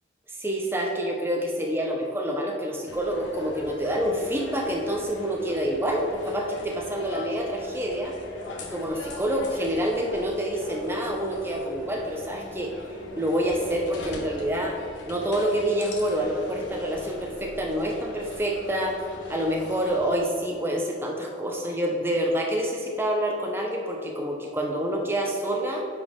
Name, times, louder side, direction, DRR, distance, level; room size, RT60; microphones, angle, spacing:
voice 1, 0.3-8.2 8.6-12.8 13.2-14.8 15.1-19.0 19.3-25.8, equal, 10° right, 0 dB, 0.7 m, -27 dB
sound 1, 2.9-20.2, left 2 dB, 80° left, 1.0 m, -42 dB
9.6 x 4.3 x 3.7 m, 2.6 s
head